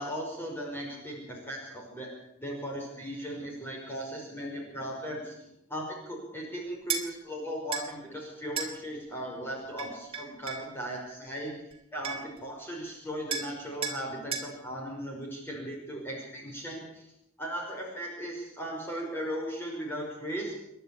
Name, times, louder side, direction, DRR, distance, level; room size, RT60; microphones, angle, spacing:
voice 1, 0.0-2.1 2.4-5.4 5.7-11.5 11.9-17.1 17.4-20.5, equal, 10° left, -2 dB, 5.5 m, -37 dB
sound 1, 6.9-7.1 7.7-7.9 8.6-8.7 9.8-10.7 11.7-11.8 12.0-12.4 13.3-13.5 13.8-14.0 14.3-14.5, right 6 dB, 25° right, 3.0 m, -33 dB
29.0 x 11.5 x 8.6 m, 0.82 s
head